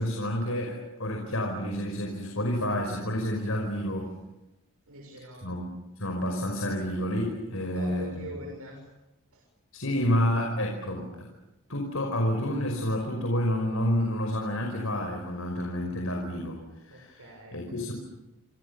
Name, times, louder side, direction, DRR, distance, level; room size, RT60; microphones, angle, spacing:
voice 1, 0.0-4.1 5.4-8.3 9.7-11.3 11.7-16.6 16.9-17.9, equal, 70° left, 1 dB, 5.5 m, -29 dB
voice 2, 4.9-5.5 7.6-8.8 16.9-17.6, right 1 dB, 85° right, 0 dB, 6.9 m, -42 dB
29.0 x 27.0 x 7.1 m, 0.96 s
head